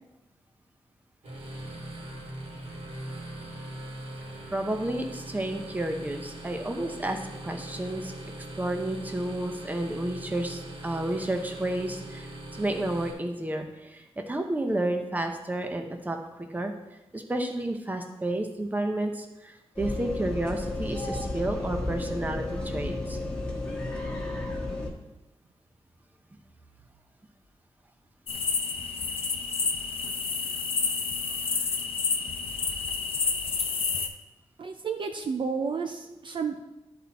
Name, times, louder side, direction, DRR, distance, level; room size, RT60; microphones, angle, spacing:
sound 1, 1.2-13.1, right 1 dB, 80° right, 2.7 m, -41 dB
voice 1, 4.5-8.1 8.6-12.3 12.5-16.7 17.1-23.2 36.0-36.2, right 1 dB, 15° right, 4 dB, 0.9 m, -31 dB
sound 2, 19.8-24.9, left 2 dB, 10° left, 1.5 m, -32 dB
sound 3, 28.3-34.1, left 5 dB, 60° left, 0.8 m, -29 dB
voice 2, 34.6-36.6, right 5 dB, 50° right, 5 dB, 0.5 m, -31 dB
12.5 x 4.3 x 4.2 m, 0.96 s
wide cardioid pair, 155°, 11 cm